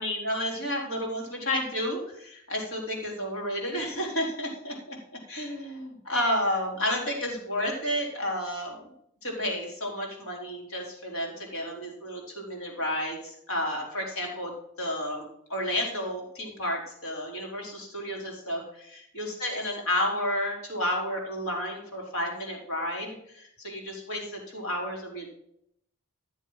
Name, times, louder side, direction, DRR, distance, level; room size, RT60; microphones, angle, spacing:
voice 1, 0.0-5.0 5.3-8.8 9.2-14.5 14.8-25.3, left 1 dB, 65° left, -1 dB, 4.2 m, -31 dB
13.5 x 7.2 x 5.6 m, 0.73 s
head